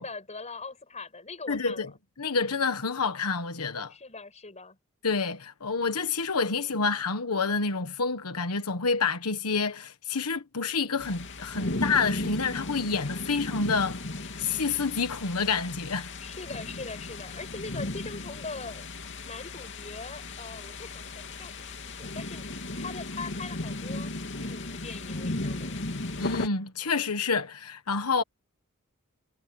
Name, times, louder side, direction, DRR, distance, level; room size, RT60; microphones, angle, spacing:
voice 1, 0.0-1.9 3.9-4.8 16.2-18.9 19.2-22.5 22.8-24.1 24.4-25.8, left 3 dB, 30° left, 6.5 m, -41 dB
voice 2, 1.5-1.9 2.2-3.9 5.0-16.1 26.2-28.2, left 4 dB, 90° left, 1.3 m, -28 dB
sound 1, 11.0-26.5, left 2 dB, 55° left, 2.7 m, -36 dB
head